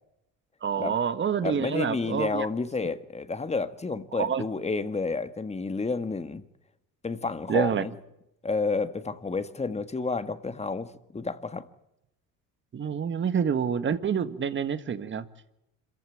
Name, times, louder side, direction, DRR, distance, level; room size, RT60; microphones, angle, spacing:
voice 1, 0.6-2.5 4.2-4.4 7.5-7.8 12.7-15.3, right 7 dB, 35° right, 1.7 m, -27 dB
voice 2, 1.4-6.4 7.0-7.9 8.4-11.7, left 4 dB, 20° left, 1.7 m, -30 dB
26.5 x 15.5 x 9.3 m
cardioid pair, 105°, 34 cm